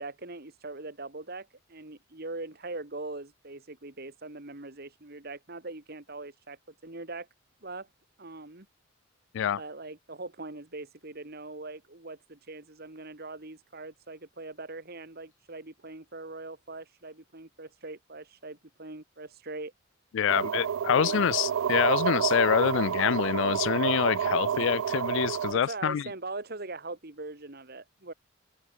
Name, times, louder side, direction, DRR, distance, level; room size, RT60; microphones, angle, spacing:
voice 1, 0.0-7.3 7.6-7.9 8.2-8.7 9.5-19.7 20.9-21.3 25.5-28.1, right 2 dB, 50° right, 2.1 m, -41 dB
voice 2, 20.1-26.0, left 8 dB, 65° left, 0.3 m, -26 dB
sound 1, 20.3-25.5, right 8 dB, 85° right, 0.4 m, -29 dB
open air
head